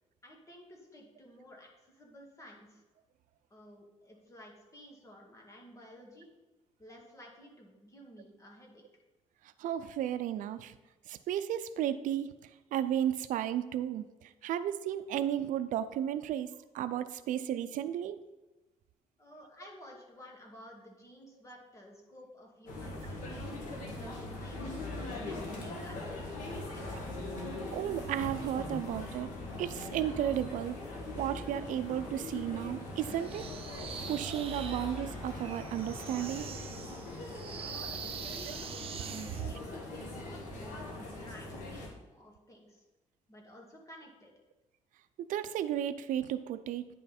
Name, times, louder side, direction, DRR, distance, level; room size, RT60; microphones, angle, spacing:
voice 1, 0.2-2.8 3.5-6.3 6.8-8.8 19.2-23.4 23.8-27.0 37.6-42.8 43.3-44.3, equal, 25° left, -1 dB, 2.1 m, -53 dB
voice 2, 9.6-10.8 11.1-18.2 27.7-29.3 29.6-30.8 31.1-33.5 33.8-36.5 45.2-46.9, right 11 dB, 90° right, 12 dB, 0.5 m, -34 dB
sound 1, 22.7-41.9, left 2 dB, 90° left, 1.9 m, -41 dB
sound 2, 33.2-39.5, right 7 dB, 45° right, 0.6 m, -44 dB
9.9 x 5.5 x 4.2 m, 1.1 s
cardioid pair, 125°, 13 cm